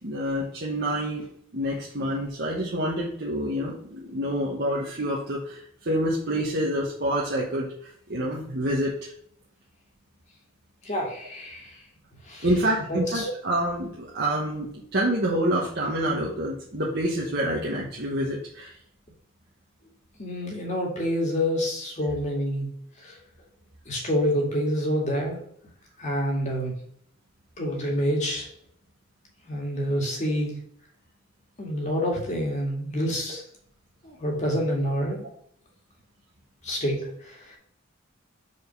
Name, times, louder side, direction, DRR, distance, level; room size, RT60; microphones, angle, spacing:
voice 1, 0.0-1.3 1.5-7.7 8.1-9.1 12.4-18.7, right 1 dB, 55° right, -5 dB, 1.3 m, -27 dB
voice 2, 10.8-11.8 12.3-12.5 12.9-13.3 20.2-22.7 23.0-23.2 23.9-25.4 26.0-26.7 27.6-28.5 29.4-30.5 31.6-33.4 34.0-35.3 36.6-37.6, equal, 40° left, -2 dB, 2.2 m, -27 dB
5.2 x 4.6 x 5.2 m, 0.65 s
head